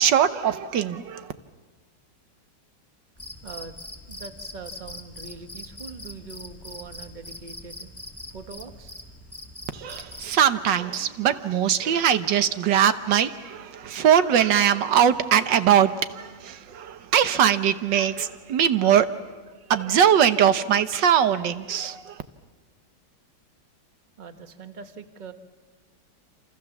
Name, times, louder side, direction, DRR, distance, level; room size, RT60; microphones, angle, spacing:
voice 1, 0.0-1.3 9.7-19.1 19.7-22.2, right 9 dB, 70° right, 1.6 m, -21 dB
Cricket, 3.2-10.4, left 1 dB, 10° left, 1.7 m, -42 dB
voice 2, 3.4-3.8 4.1-7.9 8.3-9.0 19.5-19.7 24.2-25.3, right 5 dB, 30° right, 1.2 m, -42 dB
28.0 x 26.5 x 7.2 m
omnidirectional pair, 2.1 m